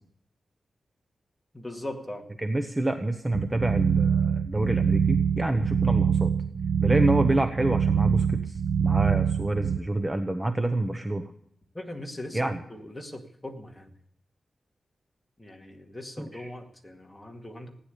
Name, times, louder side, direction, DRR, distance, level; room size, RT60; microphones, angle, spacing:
voice 1, 1.5-2.3 11.7-13.9 15.4-17.7, left 1 dB, 10° left, 2 dB, 2.2 m, -40 dB
voice 2, 2.4-6.3 6.8-11.2 12.3-12.6 16.2-16.5, right 1 dB, 15° right, 7 dB, 0.9 m, -27 dB
sound 1, 3.3-9.8, right 7 dB, 70° right, 0.6 m, -24 dB
15.5 x 9.9 x 8.3 m, 0.69 s
wide cardioid pair, 145°, 0 cm